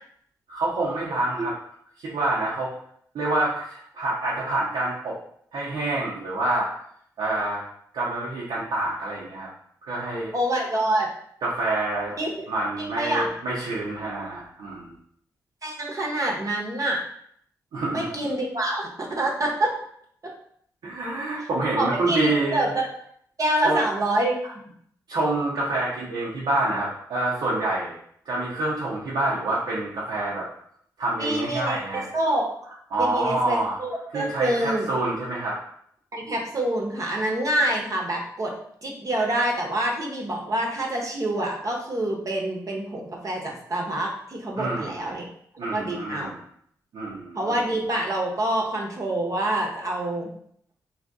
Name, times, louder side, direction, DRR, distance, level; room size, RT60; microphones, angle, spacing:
voice 1, 0.5-1.5 2.0-2.7 3.1-5.1 5.5-6.7 7.2-7.6 7.9-9.5 9.8-10.3 11.4-12.2 12.5-14.9 17.7-18.2 20.8-22.7 23.6-23.8 25.1-27.9 28.3-30.5 31.0-32.1 32.9-33.8 34.1-35.6 44.6-45.0 45.6-46.4 46.9-47.6, right 2 dB, 75° right, -7 dB, 0.8 m, -27 dB
voice 2, 10.3-11.1 12.2-12.5 12.8-13.3 15.6-17.0 17.9-19.7 21.8-22.9 23.4-24.5 31.2-34.8 36.1-38.5 38.8-45.3 45.7-46.3 47.3-50.3, right 1 dB, 45° right, 0 dB, 0.9 m, -26 dB
2.6 x 2.4 x 3.5 m, 0.66 s
supercardioid pair, 45°, 8 cm